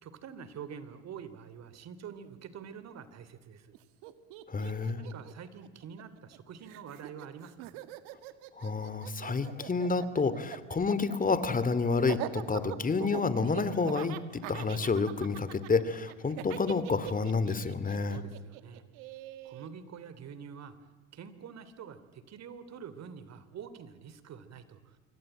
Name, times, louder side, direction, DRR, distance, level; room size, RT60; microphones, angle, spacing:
voice 1, 0.0-3.8 5.0-7.8 18.1-18.8 19.4-20.8 21.1-25.0, right 7 dB, 50° right, 14 dB, 3.0 m, -46 dB
Laughter, 3.7-3.8 4.0-6.4 6.7-19.7, right 15 dB, 75° right, 1.9 m, -42 dB
voice 2, 4.5-5.0 8.6-18.2, left 4 dB, 25° left, 14 dB, 2.6 m, -29 dB
26.5 x 23.5 x 9.0 m, 1.4 s
supercardioid pair, 85°, 34 cm